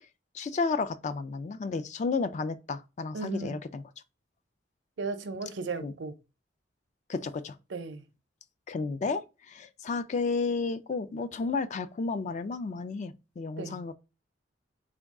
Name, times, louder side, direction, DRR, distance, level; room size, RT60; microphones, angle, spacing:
voice 1, 0.3-3.8 5.8-5.9 7.1-7.5 8.7-9.2 9.5-13.9, left 4 dB, 40° left, 0.3 m, -32 dB
voice 2, 3.1-3.6 5.0-6.2 7.7-8.0 13.6-13.8, right 3 dB, 75° right, 0.6 m, -35 dB
3.5 x 2.3 x 3.5 m
head